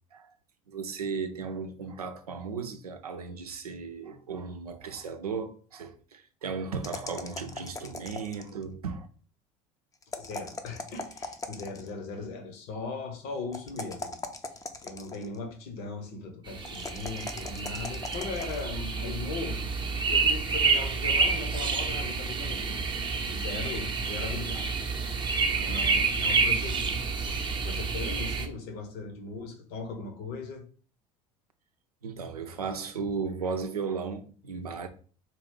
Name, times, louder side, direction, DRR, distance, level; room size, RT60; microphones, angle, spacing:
voice 1, 0.7-9.1 32.0-34.9, right 5 dB, 90° right, 0.5 m, -35 dB
sound 1, 6.8-8.6 10.0-11.9 13.5-15.4 16.7-18.6, left 3 dB, 20° left, 0.6 m, -39 dB
voice 2, 10.2-14.2 14.5-22.8 23.1-24.7 25.1-27.0 27.6-30.6, left 3 dB, 60° left, 1.1 m, -39 dB
sound 2, 16.5-28.5, right 4 dB, 25° right, 0.7 m, -29 dB
4.2 x 2.4 x 3.7 m
hypercardioid pair, 70°, 19 cm